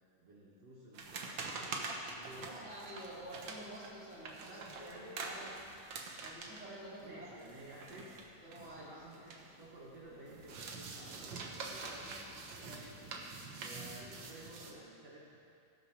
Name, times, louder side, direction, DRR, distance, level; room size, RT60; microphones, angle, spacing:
voice 1, 0.2-3.2 4.5-5.8 7.0-8.3 8.6-12.9 13.5-15.4, right 1 dB, 55° right, -7 dB, 2.5 m, -54 dB
Folding Paper, 0.9-9.7 10.0-14.7, right 4 dB, 80° right, 1.0 m, -46 dB
Train, 2.0-14.7, left 1 dB, 60° left, 3.2 m, -64 dB
voice 2, 2.4-5.5 6.2-7.3 8.4-8.9 11.8-12.0 12.6-12.9, right 1 dB, 5° right, -6 dB, 2.8 m, -50 dB
17.5 x 6.1 x 5.9 m, 2.4 s
omnidirectional pair, 3.6 m